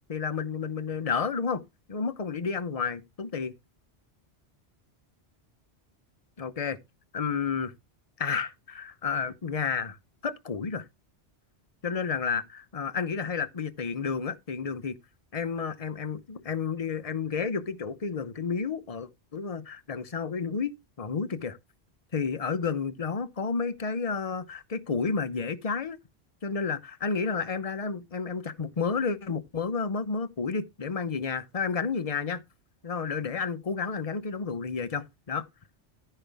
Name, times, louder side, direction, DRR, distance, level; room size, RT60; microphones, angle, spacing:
voice 1, 0.1-1.6 1.9-3.5 6.4-6.8 7.1-7.7 8.2-10.0 10.2-10.8 11.8-15.0 15.3-21.6 22.1-26.0 26.4-32.4 32.8-35.4, left 5 dB, 35° left, 0.9 m, -31 dB
14.0 x 5.7 x 3.5 m
omnidirectional pair, 1.1 m